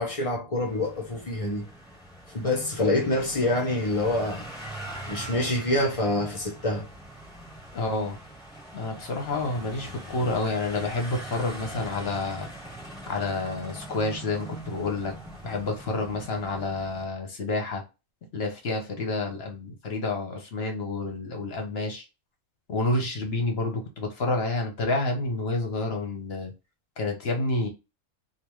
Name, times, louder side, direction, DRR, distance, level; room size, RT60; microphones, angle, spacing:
voice 1, 0.0-1.7 2.3-4.5 5.1-6.9, left 1 dB, 35° left, 0.6 m, -26 dB
sound 1, 0.5-17.1, right 1 dB, 5° left, 1.9 m, -42 dB
voice 2, 7.7-8.2 8.7-12.5 13.1-15.1 15.4-17.8 18.3-22.1 22.7-26.5 27.0-27.7, left 2 dB, 55° left, 1.0 m, -29 dB
3.4 x 2.4 x 3.0 m
omnidirectional pair, 1.4 m